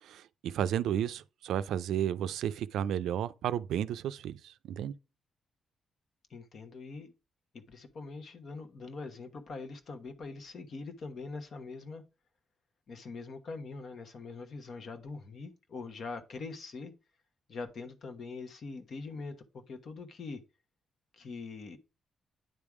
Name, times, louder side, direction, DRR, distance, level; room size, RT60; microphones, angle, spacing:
voice 1, 0.0-4.9, right 10 dB, 85° right, 0.4 m, -33 dB
voice 2, 6.3-7.1 7.5-12.0 12.9-17.0 17.5-20.4 21.1-21.8, left 4 dB, 60° left, 1.2 m, -43 dB
9.2 x 3.5 x 4.8 m
cardioid pair, 70°, 0 cm